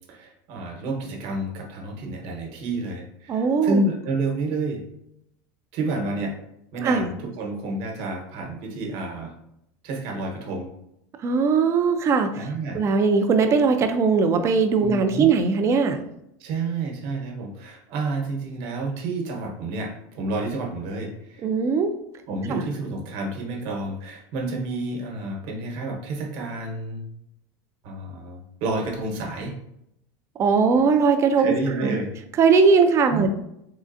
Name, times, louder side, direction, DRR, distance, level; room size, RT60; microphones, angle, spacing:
voice 1, 0.1-4.8 5.7-6.4 6.7-9.3 9.8-10.7 12.3-12.8 14.8-15.3 16.4-21.4 22.3-27.0 27.8-29.5 31.4-32.1 33.1-33.3, right 2 dB, 60° right, 1 dB, 1.1 m, -29 dB
voice 2, 3.3-3.8 6.8-7.1 11.2-12.4 12.7-16.0 21.4-21.9 22.5-22.6 30.4-32.0 32.4-33.3, right 5 dB, 30° right, 7 dB, 0.4 m, -20 dB
3.7 x 3.2 x 2.6 m, 0.78 s
supercardioid pair, 135°, 9 cm